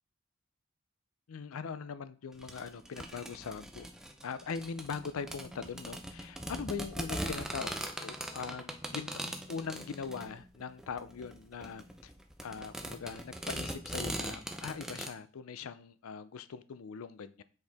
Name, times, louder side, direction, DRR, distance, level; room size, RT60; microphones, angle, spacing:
voice 1, 1.3-3.9 4.2-7.7 8.0-12.1 12.4-17.4, left 6 dB, 85° left, 14 dB, 0.5 m, -41 dB
sound 1, 2.4-15.1, right 1 dB, 5° right, 0.5 m, -41 dB
7.8 x 4.6 x 3.4 m, 0.39 s
head